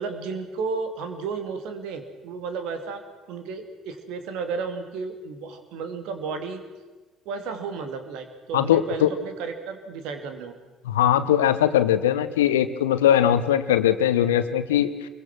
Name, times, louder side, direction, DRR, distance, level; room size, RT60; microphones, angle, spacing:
voice 1, 0.0-3.0 3.3-6.6 7.3-10.6, right 5 dB, 65° right, 7 dB, 2.6 m, -33 dB
voice 2, 8.5-9.1 10.8-14.9, left 10 dB, 80° left, 12 dB, 1.0 m, -20 dB
24.5 x 23.0 x 6.2 m, 1.2 s
figure-of-eight pair, 50°, 0 cm